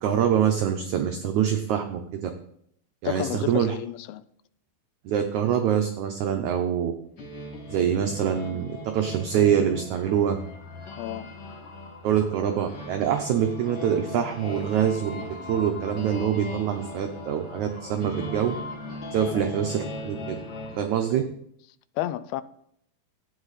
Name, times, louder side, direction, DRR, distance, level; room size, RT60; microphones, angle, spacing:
voice 1, 0.0-2.3 3.0-3.7 5.0-6.9 7.7-10.4 12.0-18.6 19.1-20.4 20.8-21.2, right 9 dB, 90° right, 1.6 m, -25 dB
voice 2, 3.0-4.2 11.0-11.3 19.2-19.5 21.1-21.2 22.0-22.4, left 13 dB, 85° left, 2.4 m, -31 dB
sound 1, 7.2-20.8, left 2 dB, 45° left, 1.5 m, -38 dB
13.0 x 8.9 x 4.1 m
omnidirectional pair, 4.4 m